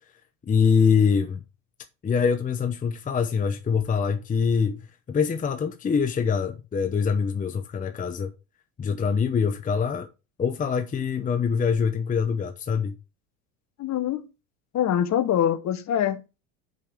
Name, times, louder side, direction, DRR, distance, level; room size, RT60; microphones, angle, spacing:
voice 1, 0.4-1.4 2.0-8.3 8.8-10.1 10.4-12.9, left 6 dB, 20° left, 0.8 m, -24 dB
voice 2, 13.8-14.2 14.7-16.4, left 10 dB, 40° left, 1.1 m, -24 dB
5.5 x 5.4 x 6.3 m
supercardioid pair, 100°, 42 cm